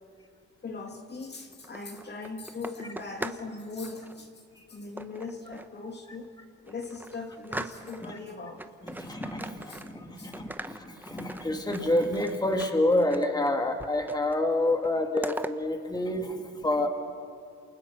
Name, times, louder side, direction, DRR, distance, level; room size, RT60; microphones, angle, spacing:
voice 1, 0.6-4.4 4.7-6.3 6.6-8.7 9.7-9.8 10.2-10.3, left 3 dB, 35° left, 3 dB, 2.2 m, -39 dB
sound 1, 1.5-3.5 3.8-4.2 5.0-5.8 6.2-6.3 6.7-8.2 8.6-10.1 10.3-13.5 13.8-14.4 14.7-15.5, right 1 dB, 5° right, 0.9 m, -40 dB
voice 2, 8.8-16.9, left 1 dB, 15° left, 3 dB, 2.3 m, -28 dB
28.5 x 28.0 x 5.9 m, 2.3 s
cardioid pair, 125°, 29 cm